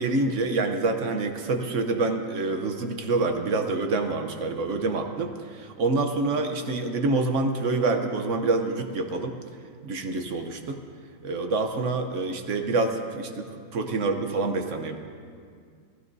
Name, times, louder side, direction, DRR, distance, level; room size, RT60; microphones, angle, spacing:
voice 1, 0.0-9.3 9.8-10.8 11.2-15.0, right 3 dB, 55° right, 5 dB, 1.0 m, -27 dB
19.5 x 15.0 x 2.7 m, 2.1 s
omnidirectional pair, 2.0 m